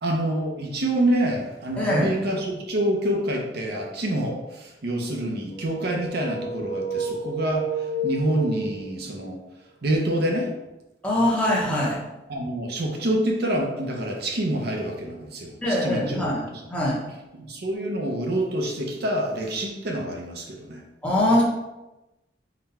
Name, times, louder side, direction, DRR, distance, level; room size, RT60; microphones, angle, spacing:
voice 1, 0.0-9.4 9.8-10.5 12.3-16.6 17.4-20.8, right 1 dB, 60° right, 1 dB, 0.6 m, -27 dB
voice 2, 1.8-2.1 11.0-12.0 15.6-16.4 16.7-17.0 21.0-21.4, left 1 dB, 5° left, -5 dB, 0.8 m, -22 dB
sound 1, 5.5-9.1, right 2 dB, 30° left, 1.2 m, -30 dB
4.0 x 2.2 x 4.1 m, 1.0 s
head